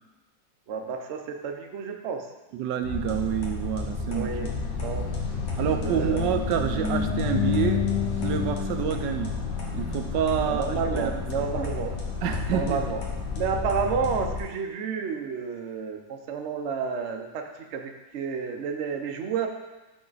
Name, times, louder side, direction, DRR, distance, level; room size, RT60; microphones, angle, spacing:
voice 1, 0.7-2.3 4.1-5.4 5.8-6.2 10.4-12.0 12.5-13.0 13.4-19.5, right 6 dB, 55° right, 3 dB, 0.8 m, -31 dB
voice 2, 2.6-4.3 5.6-7.9 8.2-9.3 9.7-11.4 12.2-12.8, right 8 dB, 80° right, 6 dB, 1.2 m, -28 dB
sound 1, 2.8-14.4, left 5 dB, 85° left, 1.9 m, -30 dB
11.0 x 4.1 x 4.0 m, 1.1 s
omnidirectional pair, 1.9 m